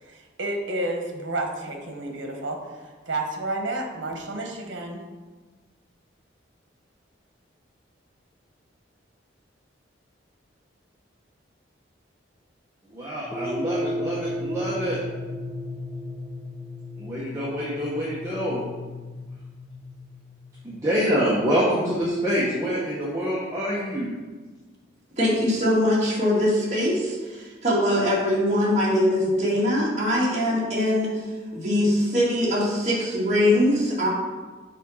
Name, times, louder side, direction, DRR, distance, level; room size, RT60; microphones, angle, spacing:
voice 1, 0.0-5.0, right 2 dB, 75° right, 2 dB, 1.3 m, -31 dB
voice 2, 12.9-15.0 17.0-18.6 20.6-24.1, equal, 15° right, -8 dB, 1.2 m, -26 dB
sound 1, 13.3-21.8, left 1 dB, 10° left, 0.5 m, -34 dB
voice 3, 25.2-31.2 31.5-34.1, left 1 dB, 35° right, -6 dB, 2.2 m, -22 dB
7.4 x 4.3 x 5.7 m, 1.3 s
head